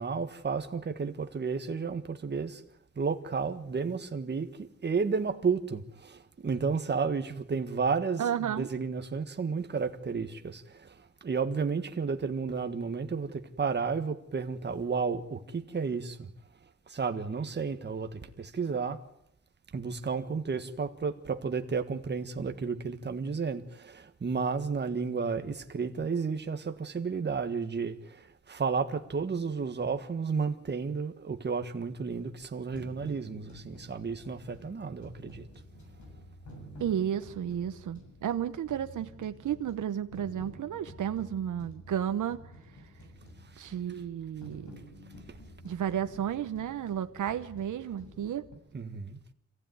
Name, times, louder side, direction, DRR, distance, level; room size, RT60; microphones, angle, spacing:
voice 1, 0.0-2.6 2.9-16.3 16.9-19.0 19.7-35.5 43.4-43.6 45.3-45.4 48.7-49.2, right 5 dB, 35° right, 1.6 m, -32 dB
voice 2, 8.2-8.7 36.8-42.4 43.6-44.7 45.6-48.4, right 9 dB, 90° right, 1.0 m, -32 dB
sound 1, 32.7-48.5, equal, 75° left, 7.3 m, -50 dB
26.5 x 15.5 x 9.4 m
wide cardioid pair, 140°, 30 cm